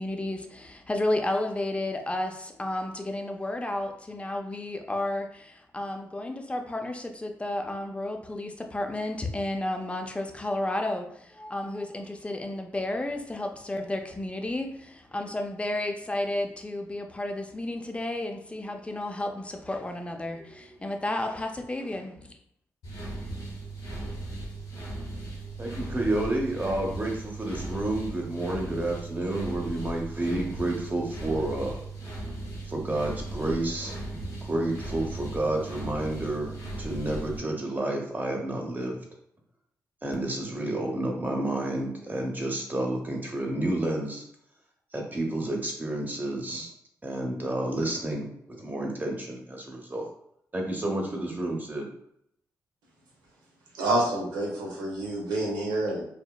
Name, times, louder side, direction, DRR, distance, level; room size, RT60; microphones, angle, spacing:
voice 1, 0.0-22.3, left 1 dB, 15° left, 4 dB, 0.5 m, -32 dB
sound 1, 22.8-37.4, right 2 dB, 85° left, 1.1 m, -37 dB
voice 2, 25.6-31.8 32.7-39.0 40.0-44.2 44.9-46.7 47.0-48.3 48.6-50.1 50.5-51.9, right 1 dB, 25° right, 0 dB, 0.8 m, -30 dB
voice 3, 53.8-56.0, right 1 dB, 85° right, -2 dB, 0.7 m, -28 dB
2.8 x 2.0 x 2.3 m, 0.72 s
hypercardioid pair, 40°, 7 cm